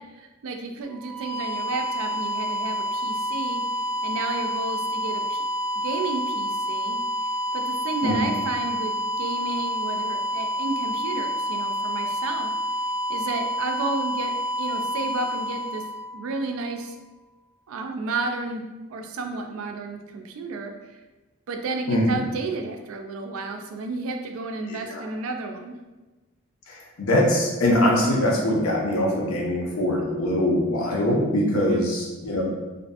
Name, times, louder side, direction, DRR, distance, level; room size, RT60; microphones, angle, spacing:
voice 1, 0.2-3.6 4.0-5.4 5.7-7.0 7.5-12.5 13.1-15.8 16.1-17.0 17.7-18.6 18.9-20.7 21.5-25.7 31.7-31.9, right 3 dB, 75° right, 4 dB, 0.3 m, -32 dB
sound 1, 0.8-16.6, equal, ahead, 0.5 m, -28 dB
voice 2, 21.9-22.2 24.7-25.0 26.7-32.4, left 1 dB, 80° left, -1 dB, 0.6 m, -23 dB
2.5 x 2.5 x 2.3 m, 1.1 s
head